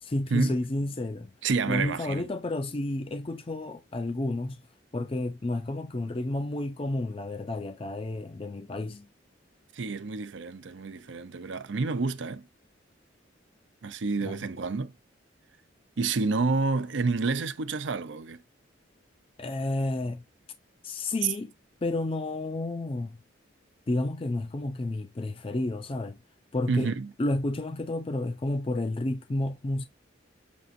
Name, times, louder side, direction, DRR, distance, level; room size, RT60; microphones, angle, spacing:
voice 1, 0.0-1.3 1.7-4.6 4.9-9.1 14.2-14.4 19.4-20.2 20.8-21.5 21.8-23.2 23.9-26.2 26.5-26.9 27.2-29.9, left 2 dB, 30° left, 0.5 m, -31 dB
voice 2, 1.4-2.3 9.7-12.4 13.8-14.9 16.0-18.4 26.7-27.1, right 4 dB, 75° right, 0.6 m, -29 dB
7.0 x 2.5 x 2.5 m
head